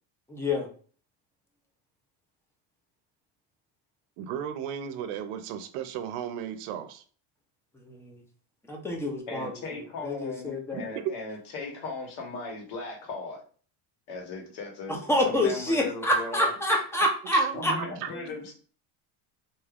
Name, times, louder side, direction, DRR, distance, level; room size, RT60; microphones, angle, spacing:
voice 1, 0.3-0.7 7.8-8.2 8.7-9.5 10.0-10.9 15.1-17.7, left 1 dB, 5° left, 0.5 m, -27 dB
voice 2, 4.2-7.0 10.7-11.1 17.3-18.1, right 9 dB, 80° right, 0.6 m, -34 dB
voice 3, 9.3-13.4 14.1-16.5 17.5-18.5, left 3 dB, 65° left, 1.3 m, -38 dB
3.4 x 2.6 x 2.4 m
cardioid pair, 135°, 49 cm